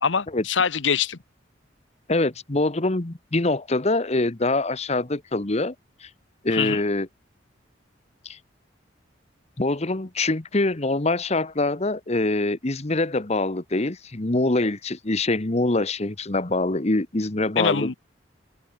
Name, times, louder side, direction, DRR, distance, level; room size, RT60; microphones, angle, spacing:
voice 1, 0.0-1.2 6.5-6.8 17.6-17.9, left 6 dB, 80° left, 1.0 m, -24 dB
voice 2, 2.1-5.7 6.0-6.1 6.4-7.1 8.2-8.4 9.6-18.0, left 2 dB, 35° left, 1.2 m, -24 dB
head